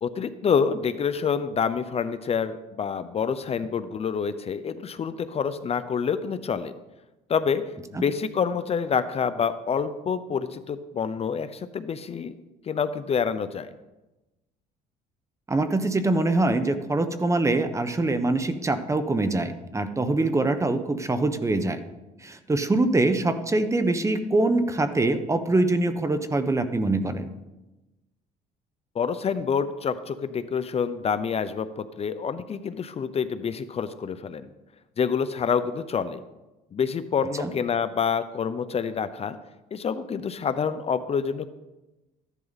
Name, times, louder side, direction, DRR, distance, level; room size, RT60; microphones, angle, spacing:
voice 1, 0.0-6.7 7.3-7.6 7.9-12.4 12.7-13.7 28.9-34.5 35.0-36.2 36.7-39.4 39.7-41.5, left 6 dB, 35° left, 12 dB, 0.6 m, -27 dB
voice 2, 15.5-21.8 22.2-27.3 37.4-37.5, right 2 dB, 15° right, 10 dB, 1.0 m, -24 dB
14.5 x 11.0 x 4.1 m, 1.1 s
cardioid pair, 110°, 17 cm